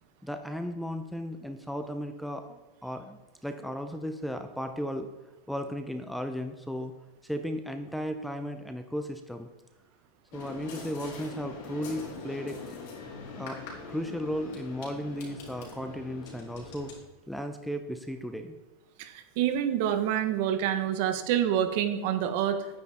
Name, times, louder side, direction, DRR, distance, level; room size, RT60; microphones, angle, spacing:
voice 1, 0.2-5.1 5.5-6.9 7.2-9.5 10.3-12.7 13.3-16.9 17.3-18.6, equal, ahead, 7 dB, 0.6 m, -35 dB
sound 1, 10.3-16.9, left 4 dB, 60° left, 4.1 m, -42 dB
voice 2, 19.0-22.8, right 10 dB, 55° right, 8 dB, 1.3 m, -27 dB
10.5 x 9.6 x 4.3 m, 1.1 s
supercardioid pair, 155°, 0 cm